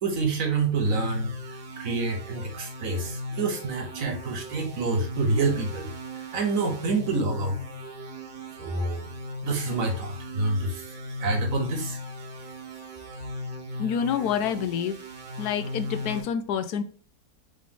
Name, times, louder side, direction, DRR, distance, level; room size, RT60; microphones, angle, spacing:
voice 1, 0.0-5.9 6.1-7.6 8.6-9.1 9.4-12.0, right 3 dB, 65° right, 3 dB, 1.3 m, -28 dB
sound 1, 0.9-16.2, left 1 dB, 80° right, 1.4 m, -37 dB
voice 2, 13.8-15.0 15.4-16.8, left 8 dB, 85° left, 9 dB, 1.1 m, -27 dB
3.9 x 3.2 x 3.5 m, 0.40 s
omnidirectional pair, 1.6 m